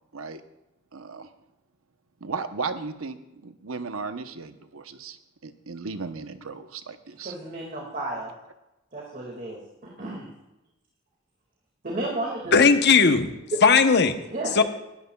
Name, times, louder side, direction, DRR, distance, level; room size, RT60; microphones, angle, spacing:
voice 1, 0.9-1.3 2.2-5.2 5.4-7.4, right 4 dB, 85° right, 9 dB, 0.9 m, -35 dB
voice 2, 7.2-8.3 8.9-10.3 11.8-12.6 14.3-14.6, right 2 dB, 45° right, -2 dB, 2.1 m, -33 dB
voice 3, 12.5-13.3 13.6-14.2 14.5-14.6, left 5 dB, 55° left, 9 dB, 0.9 m, -17 dB
19.5 x 13.0 x 2.3 m, 0.94 s
head